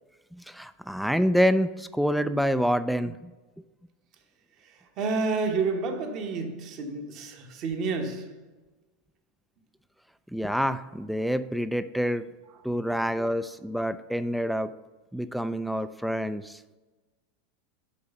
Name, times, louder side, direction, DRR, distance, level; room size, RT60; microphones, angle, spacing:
voice 1, 0.5-3.3 10.3-12.3 12.6-14.7 15.1-16.6, equal, ahead, 0.3 m, -27 dB
voice 2, 5.0-8.4, right 4 dB, 45° right, 1.1 m, -29 dB
6.5 x 4.8 x 5.4 m
figure-of-eight pair, 85°, 0 cm